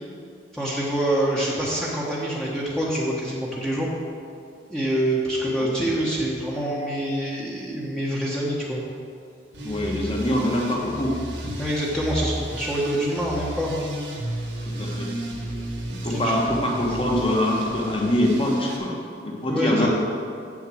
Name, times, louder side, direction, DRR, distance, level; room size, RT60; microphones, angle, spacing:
voice 1, 0.5-3.9 4.7-8.8 11.4-13.8 15.9-16.6 19.5-19.9, right 1 dB, 5° left, -6 dB, 1.1 m, -26 dB
sound 1, 9.5-18.8, equal, 90° right, 1.7 m, -33 dB
voice 2, 9.6-11.1 14.7-15.1 16.0-18.9 19.2-19.9, left 1 dB, 30° left, -2 dB, 1.5 m, -24 dB
7.5 x 7.2 x 6.1 m, 2.3 s
head